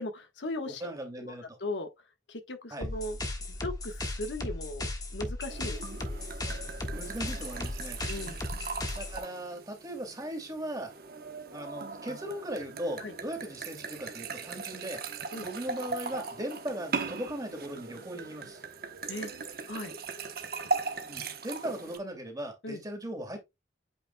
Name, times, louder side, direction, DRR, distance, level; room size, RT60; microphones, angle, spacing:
voice 1, 0.0-0.9 1.2-1.9 2.3-3.2 3.5-6.2 8.1-8.4 13.0-13.1 15.3-15.5 19.1-19.3 19.7-19.9 22.6-22.8, left 1 dB, 80° left, 1.2 m, -38 dB
voice 2, 0.6-1.6 2.7-2.9 6.9-8.0 8.9-10.9 11.5-15.0 15.4-18.6 21.0-23.4, right 1 dB, 20° right, 2.4 m, -38 dB
sound 1, 2.8-9.2, left 1 dB, 20° left, 1.4 m, -36 dB
sound 2, 5.5-22.0, right 4 dB, 55° right, 1.0 m, -39 dB
8.5 x 5.2 x 2.2 m
head